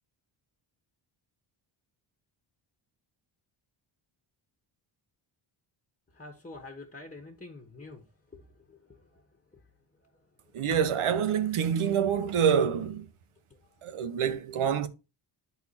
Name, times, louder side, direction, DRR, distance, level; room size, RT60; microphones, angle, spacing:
voice 1, 6.2-8.0 8.3-8.4 8.7-9.0, left 3 dB, 15° left, 1.7 m, -46 dB
voice 2, 10.5-13.0 13.8-14.9, right 7 dB, 75° right, 1.1 m, -26 dB
10.5 x 4.2 x 4.2 m
cardioid pair, 95°, 50 cm